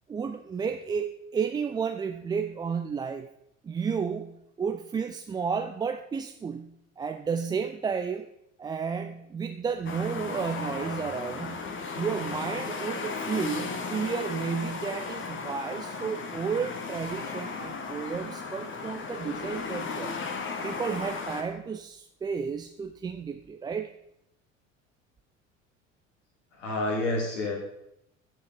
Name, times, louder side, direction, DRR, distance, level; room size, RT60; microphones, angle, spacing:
voice 1, 0.1-3.3 3.6-8.3 8.6-11.7 11.9-20.2 20.6-23.9, right 6 dB, 10° right, 7 dB, 0.4 m, -32 dB
sound 1, 9.8-21.4, left 4 dB, 30° left, 1.6 m, -35 dB
voice 2, 26.5-27.5, left 2 dB, 70° left, -1 dB, 3.5 m, -29 dB
14.5 x 5.3 x 5.3 m, 0.80 s
figure-of-eight pair, 65°, 38 cm